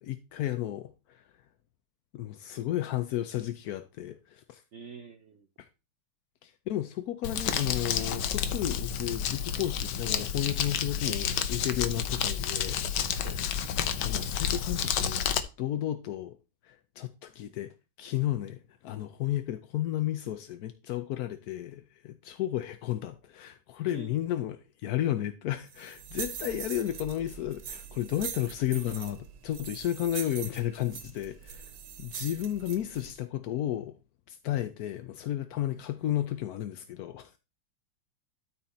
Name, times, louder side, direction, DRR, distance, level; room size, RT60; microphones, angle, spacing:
voice 1, 0.0-1.2 2.1-4.6 6.4-12.8 14.0-15.3 15.6-16.4 16.6-17.7 18.0-31.7 32.0-34.0 34.3-37.3, left 12 dB, 70° left, 0.9 m, -33 dB
voice 2, 4.7-5.5 13.2-13.5 23.8-24.2, right 6 dB, 85° right, 0.6 m, -46 dB
Crumpling crinkling, 7.2-15.4, left 8 dB, 85° left, 1.6 m, -30 dB
sound 1, 25.7-33.1, right 8 dB, 65° right, 1.6 m, -42 dB
12.5 x 4.3 x 4.2 m
omnidirectional pair, 2.2 m